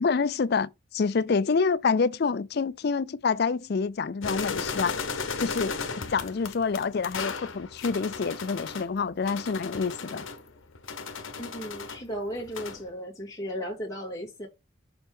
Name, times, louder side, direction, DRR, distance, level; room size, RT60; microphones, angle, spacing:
voice 1, 0.0-5.0 5.4-10.3, left 5 dB, 50° left, 0.4 m, -27 dB
sound 1, 4.2-8.9 9.3-12.0 12.3-12.9, left 5 dB, 75° left, 1.1 m, -35 dB
voice 2, 11.4-14.5, equal, 15° left, 2.4 m, -35 dB
7.0 x 4.4 x 3.6 m
head